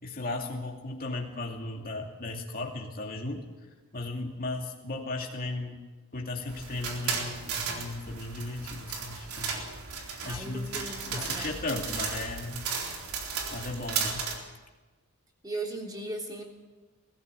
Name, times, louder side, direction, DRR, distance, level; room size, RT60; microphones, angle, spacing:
voice 1, 0.0-3.4 3.9-5.8 6.1-9.6 10.2-12.7 13.5-14.3, left 2 dB, 45° left, 0 dB, 2.6 m, -36 dB
sound 1, 6.5-14.4, right 5 dB, 85° right, 4.0 m, -35 dB
voice 2, 10.2-11.5 15.4-16.4, right 2 dB, 20° right, 0 dB, 3.3 m, -37 dB
21.0 x 15.5 x 8.4 m, 1.2 s
head